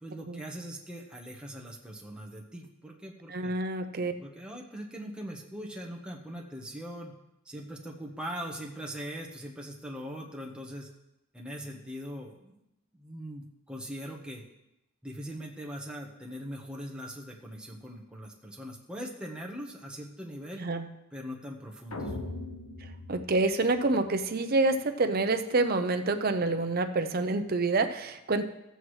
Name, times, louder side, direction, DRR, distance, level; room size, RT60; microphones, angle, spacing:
voice 1, 0.0-3.5 4.2-7.1 7.4-10.9 11.3-12.6 12.9-14.4 15.0-20.7 21.1-22.2, equal, 5° right, -1 dB, 1.1 m, -41 dB
voice 2, 3.3-4.1 20.6-20.9 23.1-28.4, right 3 dB, 45° right, 8 dB, 0.7 m, -27 dB
sound 1, 21.9-24.2, left 2 dB, 75° left, 1.2 m, -40 dB
14.0 x 7.9 x 3.2 m, 0.89 s
head